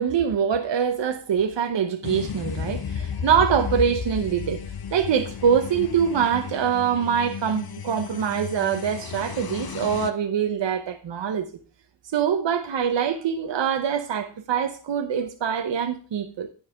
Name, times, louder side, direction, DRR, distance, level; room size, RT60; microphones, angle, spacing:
voice 1, 0.0-4.6 4.9-11.5 12.1-16.5, right 7 dB, 75° right, 0.9 m, -24 dB
sound 1, 2.0-10.1, left 7 dB, 55° left, 0.9 m, -33 dB
9.4 x 5.6 x 5.6 m
cardioid pair, 50°, 44 cm